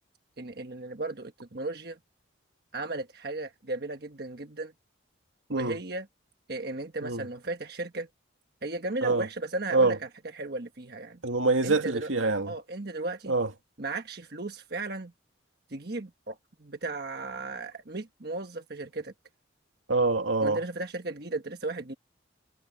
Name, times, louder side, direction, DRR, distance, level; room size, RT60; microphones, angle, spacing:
voice 1, 0.4-2.0 2.7-4.7 5.5-6.1 6.5-8.1 8.6-10.0 10.3-11.2 11.6-12.1 12.5-13.3 13.8-15.1 15.7-19.1 20.4-21.9, right 2 dB, 50° right, 1.3 m, -35 dB
voice 2, 11.2-12.5 13.3-13.5 19.9-20.6, right 3 dB, 85° right, 2.2 m, -25 dB
head